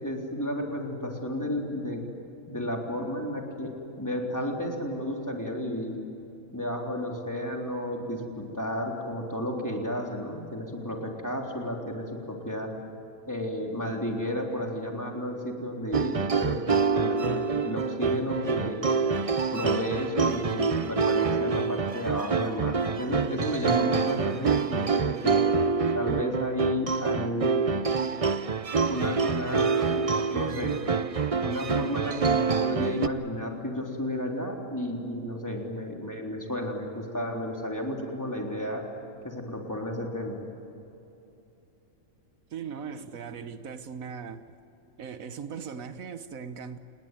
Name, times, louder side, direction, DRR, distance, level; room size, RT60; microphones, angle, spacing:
voice 1, 0.0-2.0 2.5-6.0 6.5-12.7 13.3-18.8 19.5-25.4 25.9-27.9 28.9-29.9 30.3-30.8 31.4-38.8 39.2-40.4, left 1 dB, 15° left, 3.6 m, -32 dB
sound 1, 15.9-33.1, right 5 dB, 35° right, 0.6 m, -26 dB
voice 2, 42.5-44.4 45.0-46.8, right 6 dB, 85° right, 1.5 m, -39 dB
28.0 x 20.5 x 9.1 m
omnidirectional pair, 1.4 m